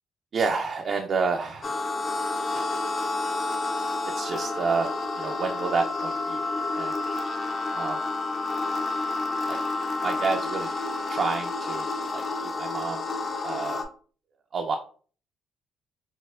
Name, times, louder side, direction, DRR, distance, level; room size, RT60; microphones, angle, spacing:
voice 1, 0.3-1.8 2.5-2.8 4.2-4.9 5.1-6.4 6.7-6.9 7.7-8.0 9.5-9.6 10.0-10.7 11.1-12.2 12.6-13.0 13.4-13.8 14.5-14.8, right 4 dB, 50° right, 3 dB, 0.3 m, -29 dB
sound 1, 1.6-13.8, left 3 dB, 40° left, 0.5 m, -30 dB
4.1 x 2.1 x 2.3 m, 0.43 s
cardioid pair, 90°, 0 cm